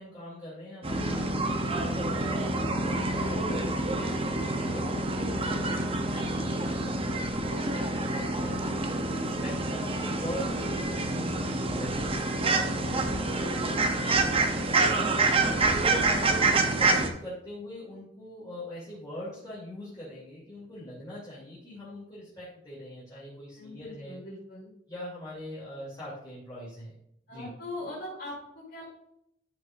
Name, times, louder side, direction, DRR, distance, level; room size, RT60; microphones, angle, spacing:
voice 1, 0.0-24.1 24.9-26.9 27.3-27.5, left 1 dB, 20° left, -9 dB, 2.9 m, -42 dB
sound 1, 0.8-17.1, right 2 dB, 30° right, 0.8 m, -27 dB
voice 2, 0.9-1.4 5.5-5.7 12.6-13.1 16.5-16.7 23.5-24.7 27.3-28.8, left 2 dB, 60° left, -8 dB, 3.3 m, -41 dB
13.5 x 5.4 x 2.6 m, 0.78 s
head